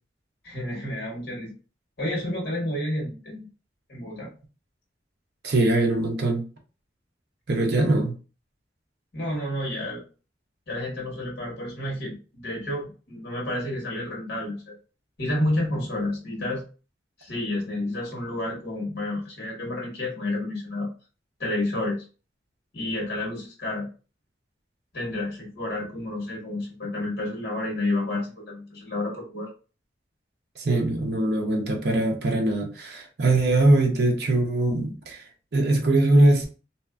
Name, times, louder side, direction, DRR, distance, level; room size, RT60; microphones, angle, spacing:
voice 1, 0.4-1.5 2.0-3.5 3.9-4.3 9.1-10.0 10.7-14.7 15.2-16.6 17.2-20.9 21.4-22.0 22.7-23.9 24.9-29.5, left 1 dB, 60° left, 1.0 m, -30 dB
voice 2, 5.4-6.4 7.5-8.1 30.6-35.3 35.5-36.5, right 2 dB, 65° right, 0.6 m, -22 dB
2.7 x 2.4 x 2.3 m
head